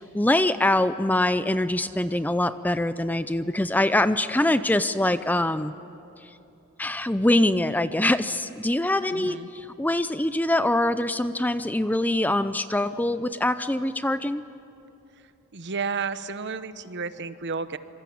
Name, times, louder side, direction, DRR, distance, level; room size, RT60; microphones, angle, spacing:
voice 1, 0.0-5.7 6.8-14.4, left 1 dB, 10° left, 12 dB, 0.5 m, -24 dB
voice 2, 9.1-9.5 15.5-17.8, right 5 dB, 55° right, 12 dB, 1.0 m, -32 dB
26.5 x 23.5 x 8.6 m, 2.9 s
head